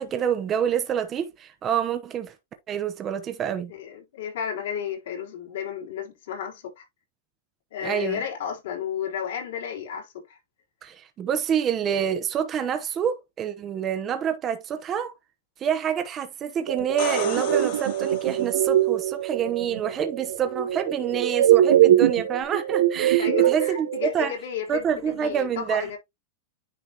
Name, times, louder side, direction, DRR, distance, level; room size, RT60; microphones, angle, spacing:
voice 1, 0.0-2.3 2.7-3.7 7.8-8.2 10.8-15.1 15.6-24.3 24.7-25.9, right 8 dB, 25° right, 0.9 m, -27 dB
voice 2, 3.7-6.8 7.7-10.4 23.2-26.0, left 8 dB, 75° left, 3.7 m, -33 dB
sound 1, 16.7-24.1, right 12 dB, 75° right, 0.7 m, -22 dB
sound 2, 16.8-18.7 22.4-22.5, left 9 dB, 60° left, 2.2 m, -35 dB
10.0 x 3.9 x 2.9 m
supercardioid pair, 140°, 0 cm